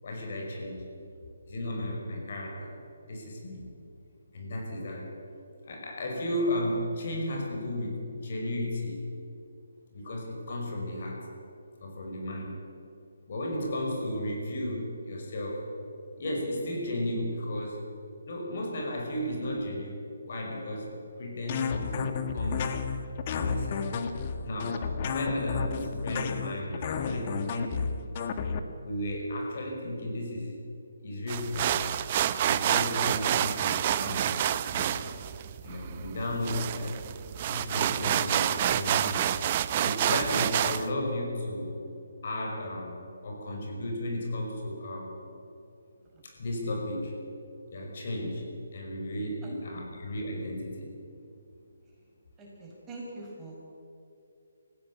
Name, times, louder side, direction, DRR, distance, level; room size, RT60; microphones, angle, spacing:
voice 1, 0.0-0.9 1.5-2.8 3.1-3.8 4.3-5.1 5.7-9.1 9.9-11.3 11.8-12.6 13.3-15.7 16.2-18.0 18.3-19.9 20.3-22.8 23.3-24.0 24.4-27.9 28.8-30.6 31.0-31.9 32.4-34.4 34.7-35.1 35.6-37.0 37.5-39.3 39.8-41.8 42.2-45.2 46.2-47.2 47.7-50.9, left 1 dB, 50° left, 0 dB, 5.8 m, -34 dB
sound 1, 21.5-28.6, left 6 dB, 35° left, 1.6 m, -32 dB
sound 2, 31.3-40.9, right 11 dB, 35° right, 0.7 m, -28 dB
voice 2, 49.4-49.8 52.4-53.6, right 2 dB, 15° right, -3 dB, 5.7 m, -44 dB
19.5 x 15.5 x 8.5 m, 2.8 s
figure-of-eight pair, 145°, 0 cm